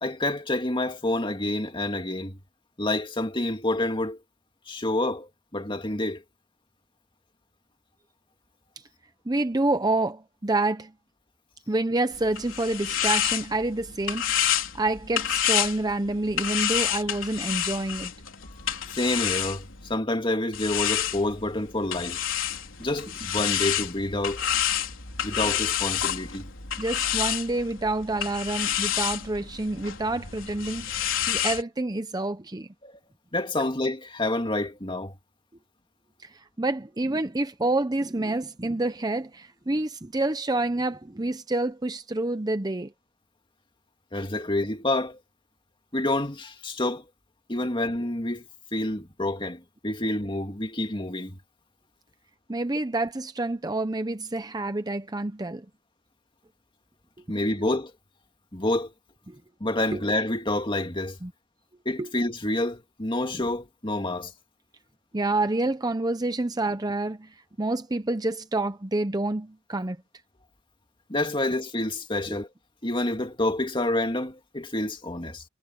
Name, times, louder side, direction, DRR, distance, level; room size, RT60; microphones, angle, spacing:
voice 1, 0.0-2.4 2.8-4.2 4.7-6.2 18.6-22.2 22.8-24.4 25.2-26.5 32.8-33.0 33.3-35.1 44.1-45.2 45.9-47.0 47.5-51.4 57.3-57.9 58.5-58.9 59.6-61.2 61.9-64.3 71.1-72.5 72.8-75.4, left 1 dB, 25° left, 2.2 m, -28 dB
voice 2, 9.3-10.9 11.7-18.1 26.8-32.7 36.2-42.9 52.5-55.7 59.3-59.4 59.9-60.0 61.2-61.3 62.0-62.1 65.1-70.0 72.3-72.4, right 2 dB, 20° right, 0.7 m, -28 dB
sound 1, 12.1-19.9 20.5-31.6, left 10 dB, 65° left, 4.1 m, -29 dB
head